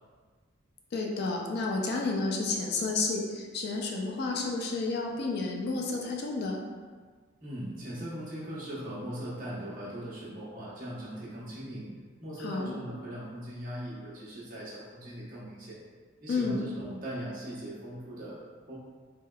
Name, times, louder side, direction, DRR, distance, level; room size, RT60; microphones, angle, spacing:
voice 1, 0.9-6.6 12.4-12.7 16.3-16.6, left 3 dB, 55° left, 0 dB, 0.4 m, -31 dB
voice 2, 7.4-11.9 12.2-15.8 16.2-18.8, right 1 dB, 45° right, -8 dB, 0.8 m, -39 dB
3.3 x 2.1 x 2.2 m, 1.5 s
head